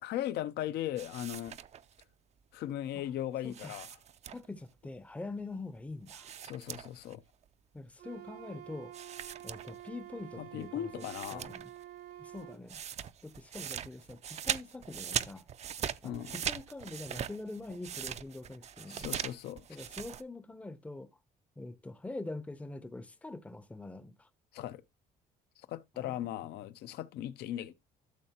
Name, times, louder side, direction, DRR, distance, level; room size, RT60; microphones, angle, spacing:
voice 1, 0.0-1.6 2.5-3.9 6.4-7.2 10.4-11.5 16.0-16.4 18.9-19.6 24.5-24.8 25.7-27.7, left 12 dB, 75° left, 0.7 m, -38 dB
sound 1, 1.0-2.0 3.5-4.7 6.1-7.1 7.4-7.5 8.9-10.1 10.6-10.7 11.0-11.8 12.1-20.2, right 9 dB, 40° right, 0.5 m, -40 dB
voice 2, 3.4-3.7 4.3-6.3 7.7-8.9 9.4-11.7 12.2-12.8 13.2-15.5 16.0-19.1 19.7-21.1 21.6-24.3 25.9-26.3, left 2 dB, 10° left, 0.6 m, -44 dB
Wind instrument woodwind instrument, 8.0-12.6, right 12 dB, 65° right, 0.9 m, -49 dB
12.5 x 6.4 x 2.9 m
cardioid pair, 110°, 17 cm